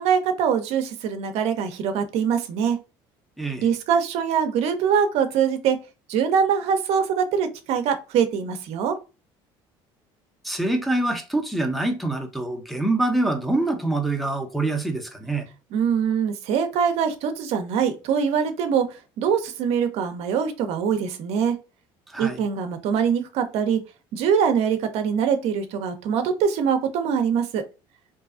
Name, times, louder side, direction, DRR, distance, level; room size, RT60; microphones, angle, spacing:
voice 1, 0.0-2.8 3.6-5.8 6.1-9.0 15.7-21.5 22.2-23.8 24.1-27.6, right 7 dB, 65° right, 0.5 m, -23 dB
voice 2, 3.4-3.7 10.4-15.4 22.1-22.4, right 2 dB, ahead, 0.6 m, -25 dB
2.6 x 2.3 x 2.3 m
supercardioid pair, 90°, 11 cm